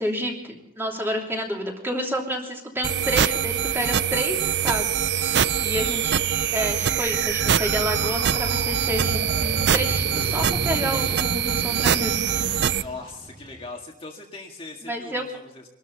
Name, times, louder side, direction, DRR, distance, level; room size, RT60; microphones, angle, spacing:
voice 1, 0.0-12.4 14.9-15.2, equal, 10° right, 0 dB, 3.0 m, -29 dB
sound 1, 2.8-12.8, right 8 dB, 55° right, 0.5 m, -23 dB
Motorcycle, 7.1-13.7, right 1 dB, 25° right, 3.0 m, -34 dB
voice 2, 10.7-11.2 12.8-15.6, left 3 dB, 25° left, 0 dB, 1.9 m, -40 dB
24.5 x 13.0 x 4.1 m, 0.91 s
head